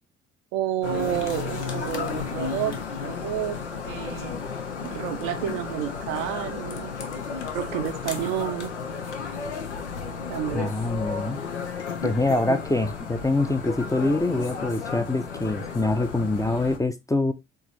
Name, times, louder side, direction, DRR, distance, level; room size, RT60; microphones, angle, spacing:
voice 1, 0.5-4.4 4.8-7.0 7.5-8.8 10.3-10.7, right 11 dB, 70° right, 0.8 m, -30 dB
sound 1, 0.8-16.8, left 5 dB, 90° left, 0.6 m, -33 dB
voice 2, 10.5-11.4 12.0-17.3, left 2 dB, 10° left, 0.5 m, -25 dB
4.6 x 3.3 x 3.1 m
figure-of-eight pair, 45°, 34 cm